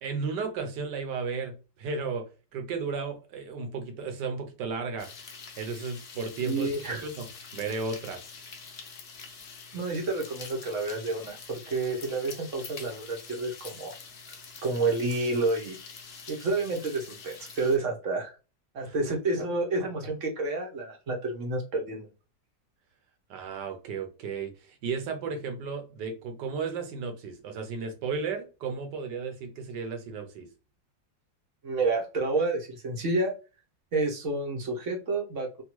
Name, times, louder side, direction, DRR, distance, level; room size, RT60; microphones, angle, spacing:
voice 1, 0.0-2.2 2.5-5.1 5.6-6.7 7.0-7.3 7.5-8.2 18.8-18.9 23.3-30.5, right 5 dB, 70° right, 1.3 m, -34 dB
sound 1, 5.0-17.8, left 5 dB, 75° left, 0.5 m, -46 dB
voice 2, 6.4-7.0 9.7-13.9 14.6-15.8 16.3-18.3 18.7-22.1 31.6-33.3 33.9-35.6, right 3 dB, 55° right, 0.9 m, -29 dB
3.5 x 2.3 x 3.0 m
omnidirectional pair, 2.0 m